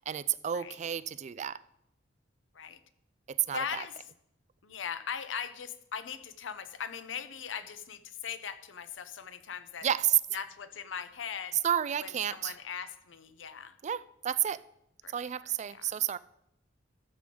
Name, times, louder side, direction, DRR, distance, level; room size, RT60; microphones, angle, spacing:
voice 1, 0.1-1.6 3.3-3.8 9.8-10.2 11.6-12.5 13.8-14.6 15.1-16.2, right 10 dB, 35° right, 0.3 m, -30 dB
voice 2, 3.5-4.0 4.6-9.9 10.3-11.6 12.0-13.7 15.0-15.3 15.7-15.9, left 7 dB, 70° left, 0.7 m, -40 dB
13.0 x 7.7 x 3.8 m
head